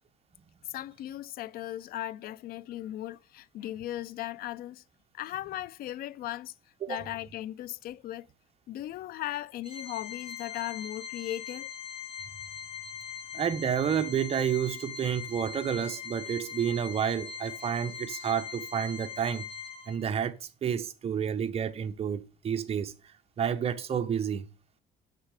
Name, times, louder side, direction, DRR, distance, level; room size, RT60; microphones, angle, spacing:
voice 1, 0.7-4.8 5.1-6.5 6.9-8.3 8.7-11.7 17.6-17.7, left 14 dB, 60° left, 0.4 m, -37 dB
Organ, 9.6-20.2, left 7 dB, 35° left, 1.6 m, -41 dB
voice 2, 13.3-19.5 19.9-22.9 23.4-24.5, right 8 dB, 35° right, 0.8 m, -30 dB
6.6 x 6.4 x 4.8 m
cardioid pair, 110°, 17 cm